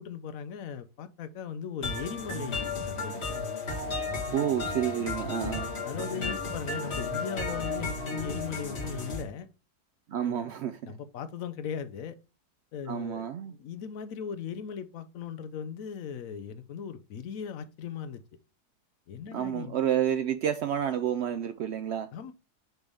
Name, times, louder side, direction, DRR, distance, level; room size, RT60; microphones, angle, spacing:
voice 1, 0.0-3.2 5.4-9.5 10.2-10.5 10.8-12.2 12.7-18.2 19.1-19.8 22.1-22.3, left 7 dB, 65° left, 1.0 m, -38 dB
sound 1, 1.8-9.2, left 3 dB, 40° left, 1.9 m, -34 dB
voice 2, 4.3-5.7 10.1-10.9 12.9-13.6 19.3-22.1, right 9 dB, 90° right, 0.5 m, -29 dB
6.2 x 3.4 x 5.3 m
omnidirectional pair, 1.7 m